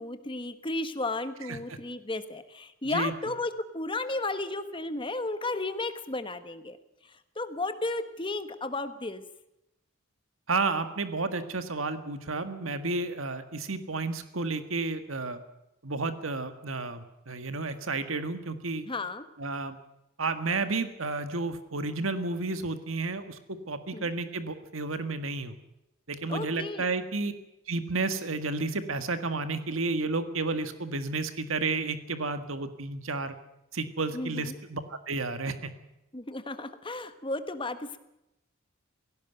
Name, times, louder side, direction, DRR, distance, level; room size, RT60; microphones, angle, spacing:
voice 1, 0.0-6.8 7.3-9.2 18.9-19.2 23.9-24.1 26.3-26.8 34.1-34.6 36.1-38.0, left 2 dB, 25° left, 10 dB, 1.4 m, -33 dB
voice 2, 10.5-15.4 15.8-18.9 19.4-19.8 20.2-25.6 26.1-27.3 27.7-33.3 33.7-35.7, right 3 dB, 80° right, 10 dB, 1.7 m, -31 dB
17.5 x 17.0 x 9.2 m, 0.88 s
head